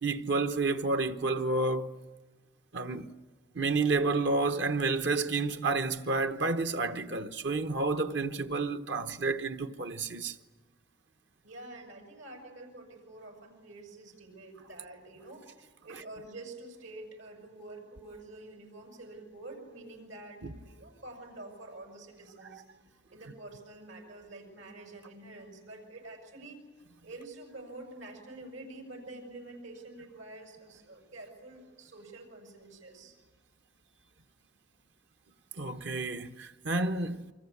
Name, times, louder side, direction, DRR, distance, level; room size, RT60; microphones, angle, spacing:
voice 1, 0.0-1.9 2.7-3.1 3.5-10.4 20.4-20.5 35.6-37.3, right 3 dB, 60° right, 1.0 m, -30 dB
voice 2, 11.4-22.6 22.9-26.6 27.0-33.2, right 2 dB, 85° right, 6.9 m, -47 dB
28.5 x 24.5 x 8.5 m
head